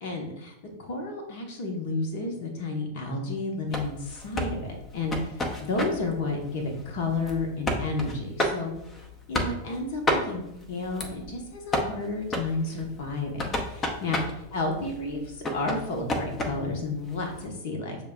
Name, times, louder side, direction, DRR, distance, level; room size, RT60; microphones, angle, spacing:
voice 1, 0.0-0.5 0.8-5.3 5.6-8.7 9.3-10.4 10.7-14.2 14.5-15.2 15.5-18.0, left 3 dB, 50° left, 2 dB, 0.9 m, -31 dB
sound 1, 3.7-17.4, left 1 dB, 20° left, 0.7 m, -33 dB
6.5 x 2.2 x 3.6 m, 0.85 s
figure-of-eight pair, 90°, 0 cm